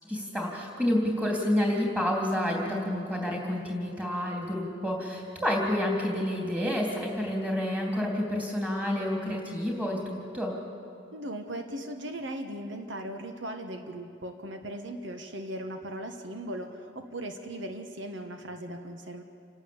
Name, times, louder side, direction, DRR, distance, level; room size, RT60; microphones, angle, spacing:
voice 1, 0.0-10.6, left 1 dB, 5° right, -1 dB, 3.3 m, -29 dB
voice 2, 11.1-19.2, right 1 dB, 75° right, 5 dB, 1.4 m, -38 dB
28.0 x 12.0 x 8.8 m, 2.6 s
head